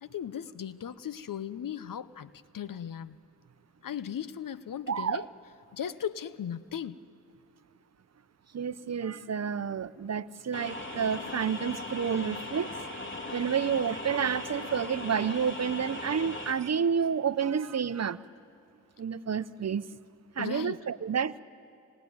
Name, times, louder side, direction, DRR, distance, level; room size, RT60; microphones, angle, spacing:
voice 1, 0.0-3.2 3.8-5.2 5.7-7.0 20.4-20.8, left 9 dB, 60° left, 16 dB, 0.8 m, -37 dB
voice 2, 4.9-5.3 8.5-12.8 13.3-18.2 19.0-19.8 20.4-21.3, right 7 dB, 45° right, 16 dB, 0.8 m, -30 dB
sound 1, 10.5-16.5, left 2 dB, 30° left, 3.7 m, -38 dB
25.0 x 20.0 x 9.5 m, 2.6 s
cardioid pair, 45°, 37 cm